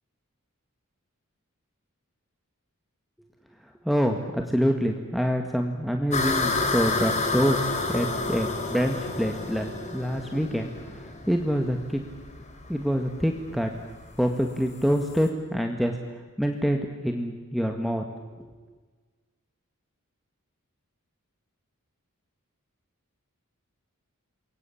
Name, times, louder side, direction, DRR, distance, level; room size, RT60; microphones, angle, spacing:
voice 1, 3.9-10.7 11.3-12.0 12.7-13.7 14.2-15.9 16.4-18.0 18.4-18.5, equal, ahead, 3 dB, 1.8 m, -26 dB
sound 1, 6.1-15.3, left 3 dB, 35° left, 3.6 m, -30 dB
28.5 x 23.0 x 8.6 m, 1.4 s
head